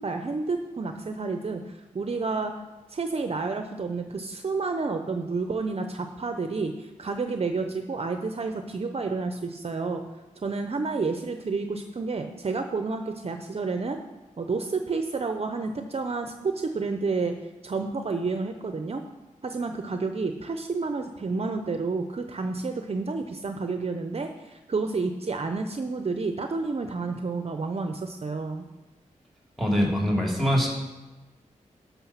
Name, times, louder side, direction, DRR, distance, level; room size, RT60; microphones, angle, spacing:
voice 1, 0.0-2.6 2.9-10.0 10.4-14.0 14.4-17.3 17.6-19.0 19.4-28.6, right 4 dB, 50° right, 6 dB, 0.7 m, -30 dB
voice 2, 29.6-30.7, equal, ahead, -1 dB, 2.9 m, -23 dB
11.5 x 5.8 x 5.7 m, 1.2 s
wide cardioid pair, 85°, 14 cm